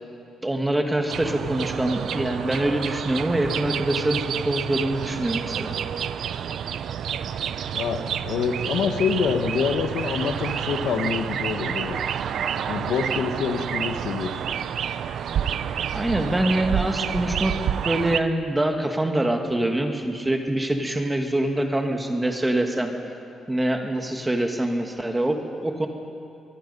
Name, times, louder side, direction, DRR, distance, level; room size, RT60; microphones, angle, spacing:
voice 1, 0.4-5.7 15.9-17.5 17.8-22.9 23.5-25.9, right 1 dB, 10° right, 4 dB, 1.4 m, -24 dB
sound 1, 1.1-18.2, right 8 dB, 60° right, 0.6 m, -29 dB
voice 2, 7.7-12.0 12.7-14.4, left 6 dB, 80° left, 6 dB, 1.5 m, -26 dB
23.5 x 22.0 x 5.4 m, 2.6 s
cardioid pair, 175°, 0 cm